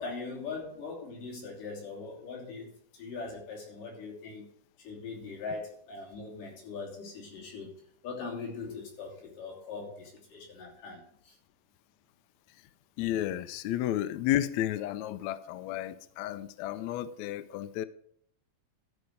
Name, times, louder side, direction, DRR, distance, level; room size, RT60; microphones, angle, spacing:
voice 1, 0.0-4.5 4.8-7.7 8.0-11.4, left 4 dB, 70° left, 4.6 m, -41 dB
voice 2, 13.0-17.9, left 13 dB, 85° left, 1.6 m, -32 dB
13.0 x 5.3 x 6.5 m
omnidirectional pair, 3.9 m